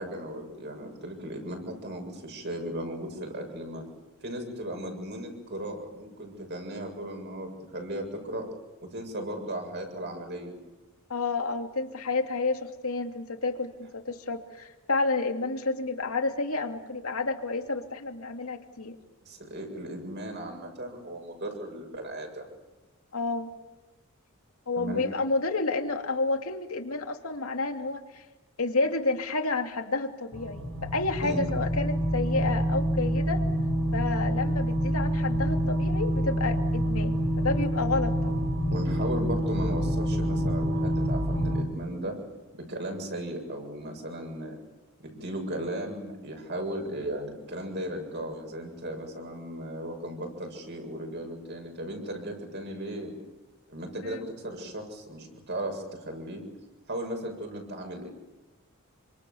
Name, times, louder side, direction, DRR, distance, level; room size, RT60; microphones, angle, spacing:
voice 1, 0.0-3.8 4.2-8.5 8.8-10.5 19.2-22.5 24.7-25.0 31.2-31.5 38.7-42.2 42.5-44.6 45.0-53.1 53.7-56.4 56.9-58.1, right 1 dB, 50° right, 3 dB, 7.4 m, -36 dB
voice 2, 11.1-19.0 23.1-23.5 24.7-28.2 28.6-33.4 33.9-38.4 54.0-54.3, left 3 dB, 80° left, 5 dB, 2.7 m, -30 dB
sound 1, 30.3-41.6, equal, 90° right, 6.1 m, -27 dB
28.0 x 25.5 x 7.2 m, 1.1 s
head